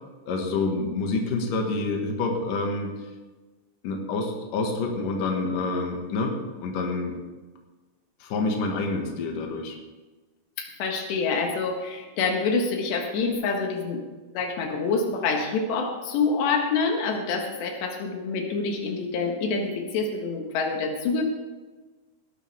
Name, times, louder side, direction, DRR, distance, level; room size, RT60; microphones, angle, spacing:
voice 1, 0.3-2.9 3.8-6.4 6.6-7.1 8.2-9.8, left 3 dB, 60° left, 1 dB, 3.0 m, -27 dB
voice 2, 10.6-14.0 14.3-21.2, left 4 dB, 85° left, 2 dB, 3.8 m, -26 dB
18.5 x 12.0 x 3.5 m, 1.3 s
omnidirectional pair, 4.8 m